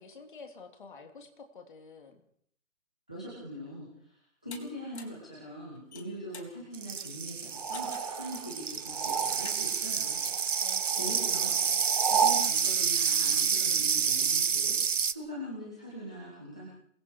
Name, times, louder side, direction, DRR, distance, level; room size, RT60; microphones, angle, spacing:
voice 1, 0.0-2.2 10.6-11.8, left 4 dB, 35° left, 4 dB, 3.5 m, -50 dB
voice 2, 3.1-10.2 11.0-11.5 11.8-16.7, equal, 5° left, -6 dB, 0.8 m, -42 dB
sound 1, 4.5-4.6 4.9-5.2 5.8-6.5 7.7-8.2 9.0-9.6, left 5 dB, 50° left, 3.9 m, -47 dB
sound 2, 6.7-15.1, right 6 dB, 60° right, 1.3 m, -29 dB
sound 3, 7.5-9.8 10.0-12.5, right 7 dB, 25° right, 1.3 m, -33 dB
27.0 x 21.5 x 4.9 m, 0.66 s
hypercardioid pair, 175°, 41 cm